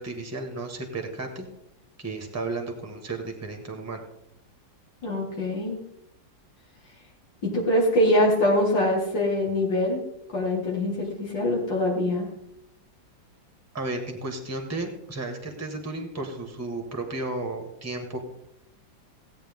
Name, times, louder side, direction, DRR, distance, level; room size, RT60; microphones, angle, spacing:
voice 1, 0.0-1.5 2.0-4.0 13.7-18.2, right 2 dB, 10° right, 4 dB, 1.5 m, -33 dB
voice 2, 5.0-5.8 7.4-10.0 10.3-12.3, left 1 dB, 70° left, -2 dB, 3.0 m, -23 dB
16.5 x 8.7 x 3.7 m, 0.81 s
omnidirectional pair, 2.0 m